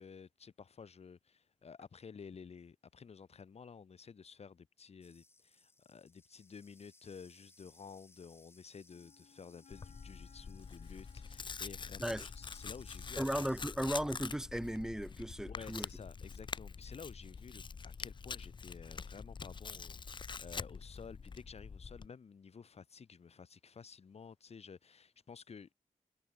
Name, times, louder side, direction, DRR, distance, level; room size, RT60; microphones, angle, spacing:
voice 1, 0.0-13.7 15.4-25.7, left 6 dB, 60° left, 3.9 m, -53 dB
sound 1, 5.0-13.7, left 2 dB, 20° left, 2.0 m, -66 dB
Wind instrument woodwind instrument, 8.9-13.7, left 7 dB, 75° left, 5.2 m, -65 dB
Tearing, 9.7-22.1, left 5 dB, 40° left, 0.7 m, -45 dB
voice 2, 13.2-15.9, equal, 5° right, 0.6 m, -36 dB
wide cardioid pair, 120°, 12 cm